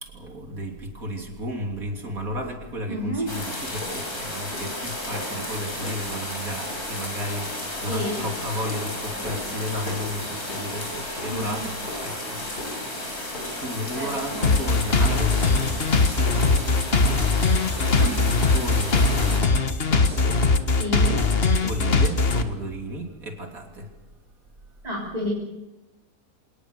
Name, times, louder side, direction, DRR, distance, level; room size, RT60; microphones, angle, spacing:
voice 1, 0.0-12.8 13.5-20.5 21.6-23.9, equal, 60° right, 3 dB, 3.7 m, -33 dB
voice 2, 2.9-3.3 7.9-8.2 11.3-11.7 13.9-14.5 18.0-18.1 20.8-21.2 24.8-25.3, equal, 25° right, -3 dB, 4.0 m, -30 dB
sound 1, 3.3-20.2, left 1 dB, 85° left, 6.0 m, -43 dB
sound 2, 3.3-19.4, left 1 dB, 70° left, 6.4 m, -33 dB
sound 3, 14.4-22.4, left 3 dB, 40° left, 1.6 m, -20 dB
26.5 x 19.0 x 6.8 m, 1.1 s
omnidirectional pair, 1.7 m